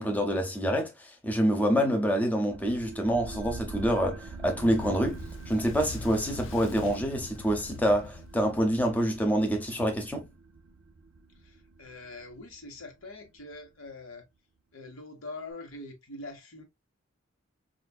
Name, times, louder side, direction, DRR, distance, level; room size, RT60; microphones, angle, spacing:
voice 1, 0.0-10.3, equal, 10° left, 0.6 m, -27 dB
sound 1, 2.5-13.7, right 3 dB, 75° right, 0.5 m, -44 dB
Fire, 4.5-9.1, left 4 dB, 65° left, 0.4 m, -43 dB
voice 2, 11.4-14.3 14.7-16.6, left 2 dB, 90° left, 1.1 m, -44 dB
4.5 x 2.4 x 2.2 m
head